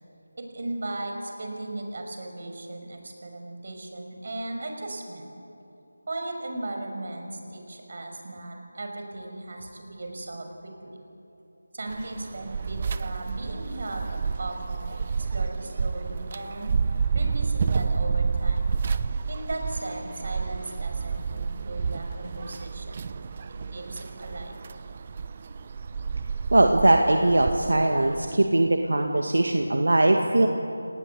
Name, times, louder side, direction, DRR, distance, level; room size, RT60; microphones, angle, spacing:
voice 1, 0.4-5.3 6.1-10.9 11.7-16.7 17.1-18.7 19.3-23.0 23.7-24.6, right 2 dB, 50° right, 3 dB, 5.7 m, -37 dB
sound 1, 11.9-28.3, right 5 dB, 30° right, 0.7 m, -30 dB
voice 2, 26.5-30.5, right 2 dB, 75° right, 3 dB, 2.1 m, -20 dB
29.5 x 19.0 x 8.4 m, 2.9 s
figure-of-eight pair, 170°, 0 cm